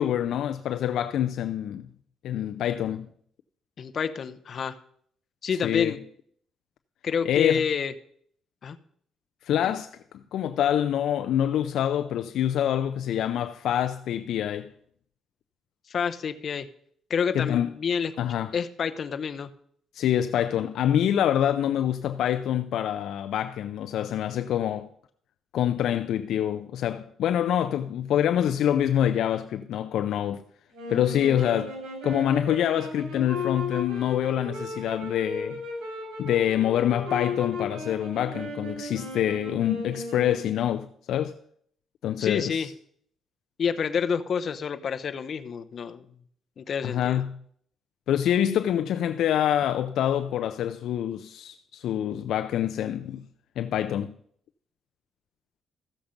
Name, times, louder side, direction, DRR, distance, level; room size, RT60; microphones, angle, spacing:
voice 1, 0.0-1.9 2.2-3.1 5.6-5.9 7.3-7.6 9.4-9.9 10.3-14.7 17.3-17.7 18.2-18.5 19.9-24.9 25.5-30.4 30.9-31.7 32.0-35.6 36.2-41.3 42.0-42.6 46.8-47.4 48.1-53.2 53.6-54.1, left 10 dB, 75° left, 0.5 m, -26 dB
voice 2, 3.8-4.8 5.4-6.0 7.0-7.9 8.6-8.8 9.6-9.8 15.9-16.7 17.1-18.1 18.5-19.5 31.4-31.6 42.2-42.7 43.6-46.2 46.6-47.2, left 6 dB, 55° left, 0.8 m, -29 dB
sound 1, 30.7-40.8, left 2 dB, 75° right, 5.6 m, -35 dB
14.5 x 7.0 x 5.2 m
cardioid pair, 90°, 0 cm